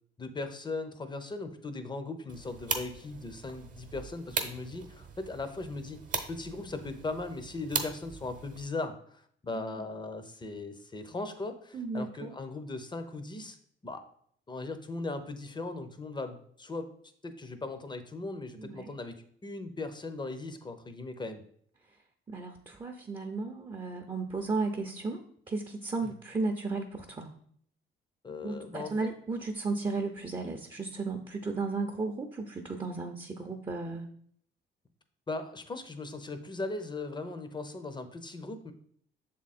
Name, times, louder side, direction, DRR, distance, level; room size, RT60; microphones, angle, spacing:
voice 1, 0.2-6.0 6.3-13.6 13.8-14.0 14.5-16.9 17.2-21.4 26.0-26.1 28.2-28.9 35.3-38.7, left 3 dB, 20° left, 9 dB, 0.8 m, -38 dB
sound 1, 2.3-8.7, right 5 dB, 40° right, 1.0 m, -39 dB
voice 2, 11.7-12.3 18.6-18.9 22.3-25.2 25.5-27.3 28.4-34.0, right 3 dB, 20° right, 3 dB, 0.7 m, -34 dB
6.8 x 3.8 x 4.2 m, 0.63 s
cardioid pair, 90°, 20 cm